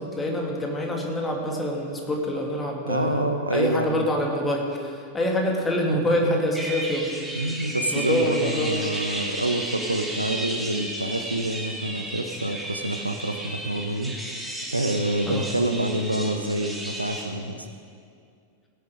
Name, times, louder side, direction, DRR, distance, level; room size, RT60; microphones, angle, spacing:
voice 1, 0.0-3.2 3.5-7.1 7.9-8.7 15.3-15.5, left 1 dB, 15° left, 0 dB, 2.2 m, -26 dB
voice 2, 2.9-4.1 5.9-6.4 7.4-14.4 14.7-17.7, right 1 dB, 85° right, 6 dB, 0.8 m, -27 dB
sound 1, 6.5-17.3, right 1 dB, 5° right, 1.9 m, -34 dB
17.5 x 9.5 x 5.0 m, 2.3 s
figure-of-eight pair, 90°, 0 cm